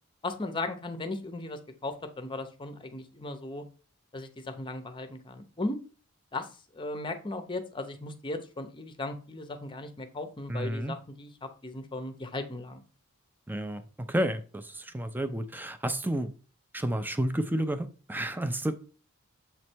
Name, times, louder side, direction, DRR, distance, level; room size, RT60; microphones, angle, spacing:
voice 1, 0.2-3.7 4.1-5.8 6.3-11.3 11.6-12.8, left 2 dB, 25° left, 0.7 m, -37 dB
voice 2, 10.5-11.0 13.5-16.3 16.7-18.7, right 1 dB, 10° right, 0.5 m, -31 dB
7.1 x 3.2 x 4.4 m
head